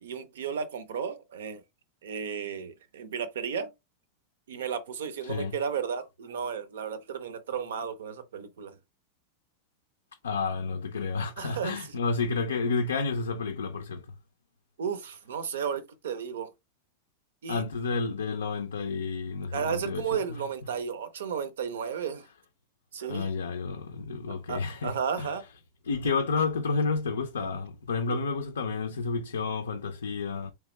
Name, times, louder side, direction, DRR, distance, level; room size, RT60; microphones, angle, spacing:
voice 1, 0.0-1.6 2.0-3.7 4.5-8.8 11.4-12.0 14.8-16.5 17.4-17.6 19.5-22.3 22.9-23.3 24.5-25.4 28.1-28.2, right 7 dB, 60° right, 0.5 m, -33 dB
voice 2, 5.2-5.6 10.2-14.1 17.5-20.4 23.1-25.3 25.9-30.5, left 4 dB, 70° left, 0.4 m, -30 dB
3.5 x 3.2 x 3.1 m
figure-of-eight pair, 90°, 0 cm